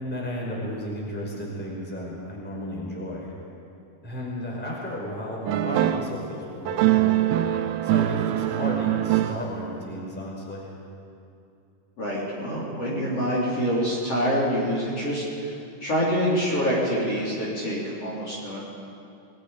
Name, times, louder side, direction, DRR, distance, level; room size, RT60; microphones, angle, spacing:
voice 1, 0.0-3.3 4.0-7.4 7.8-10.7, left 1 dB, ahead, -3 dB, 4.6 m, -33 dB
sound 1, 5.5-6.2 6.7-9.7, right 14 dB, 80° right, 2.5 m, -23 dB
voice 2, 12.0-15.5 15.8-18.6, equal, 35° left, -6 dB, 4.6 m, -26 dB
29.5 x 21.5 x 5.2 m, 2.6 s
omnidirectional pair, 5.0 m